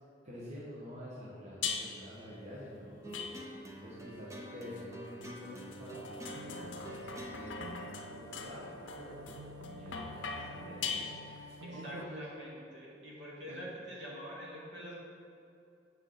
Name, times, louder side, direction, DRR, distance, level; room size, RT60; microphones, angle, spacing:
voice 1, 0.2-3.5 3.8-12.2 13.5-13.6, equal, 35° right, -7 dB, 1.2 m, -48 dB
sound 1, 1.6-2.2 3.1-3.8 4.8-11.6, left 5 dB, 70° left, 0.6 m, -42 dB
sound 2, 3.0-9.5, equal, 15° right, 0.6 m, -48 dB
sound 3, 5.9-12.0, right 1 dB, 80° right, 0.5 m, -49 dB
voice 2, 11.6-14.9, equal, 65° right, -5 dB, 1.7 m, -45 dB
8.0 x 5.5 x 3.9 m, 2.6 s
head